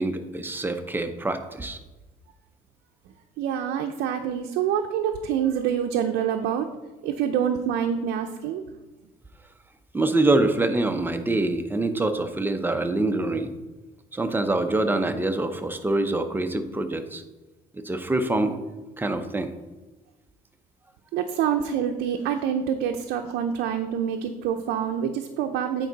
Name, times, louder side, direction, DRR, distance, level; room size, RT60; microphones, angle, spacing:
voice 1, 0.0-1.8 9.9-13.5 14.1-17.2 17.7-18.6 19.0-19.5, right 2 dB, 10° right, 7 dB, 0.7 m, -25 dB
voice 2, 3.4-6.7 7.0-8.6 21.1-25.9, right 8 dB, 85° right, 4 dB, 0.5 m, -26 dB
9.1 x 4.6 x 4.0 m, 1.1 s
cardioid pair, 110°, 17 cm